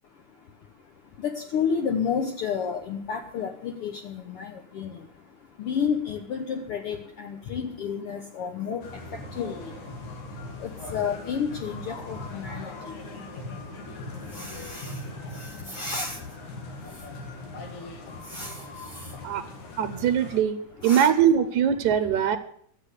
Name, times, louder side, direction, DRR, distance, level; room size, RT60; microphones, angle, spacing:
voice 1, 0.0-20.1 20.8-21.1 22.1-22.4, left 6 dB, 60° left, 3 dB, 1.7 m, -33 dB
sound 1, 8.8-20.4, left 2 dB, 85° left, 3.6 m, -40 dB
voice 2, 19.8-20.6 20.8-22.4, right 9 dB, 80° right, 10 dB, 2.4 m, -22 dB
13.5 x 7.9 x 8.4 m, 0.64 s
omnidirectional pair, 3.4 m